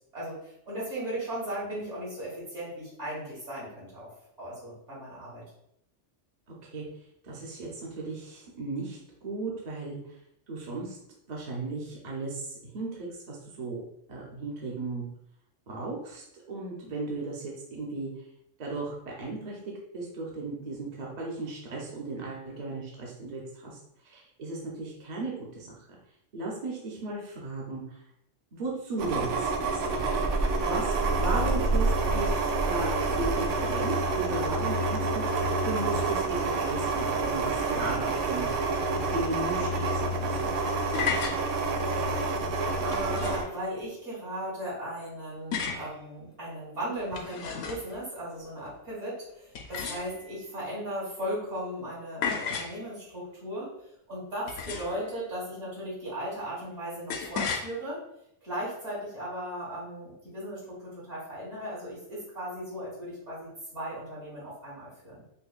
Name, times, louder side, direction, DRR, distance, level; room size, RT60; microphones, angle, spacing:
voice 1, 0.1-4.1 4.4-5.4 31.3-31.6 42.8-53.7 54.1-58.0 58.4-65.3, equal, 70° right, -7 dB, 2.1 m, -37 dB
voice 2, 7.2-10.0 10.5-11.0 11.3-13.8 14.1-15.0 15.7-18.1 18.6-19.6 19.9-23.8 24.0-25.9 26.3-28.0 28.5-30.0 30.6-35.2 35.6-38.5 38.9-40.5, right 3 dB, 40° right, -3 dB, 0.7 m, -36 dB
sound 1, 29.0-43.4, right 3 dB, 90° right, 0.9 m, -28 dB
sound 2, 40.9-41.4 42.9-43.5 45.5-45.9 47.0-48.0 49.5-50.4 52.2-52.8 54.5-55.1 57.1-57.7, left 6 dB, 65° left, 0.8 m, -33 dB
5.2 x 2.2 x 2.4 m, 0.76 s
omnidirectional pair, 1.2 m